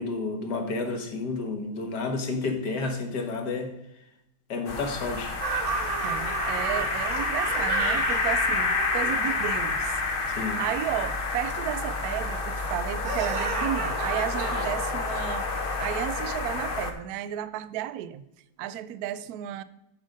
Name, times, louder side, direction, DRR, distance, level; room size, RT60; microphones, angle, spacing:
voice 1, 0.0-3.7 4.5-5.4 10.4-10.6, left 3 dB, 65° left, 4 dB, 1.8 m, -30 dB
sound 1, 4.7-16.9, left 3 dB, 40° left, 0.8 m, -29 dB
sound 2, 5.4-9.7 13.0-14.7, right 4 dB, 55° right, 1.6 m, -32 dB
voice 2, 6.0-10.3 10.6-15.5 15.8-18.2 18.6-19.6, right 12 dB, 75° right, 15 dB, 0.9 m, -33 dB
10.5 x 5.1 x 5.2 m, 0.86 s
omnidirectional pair, 2.0 m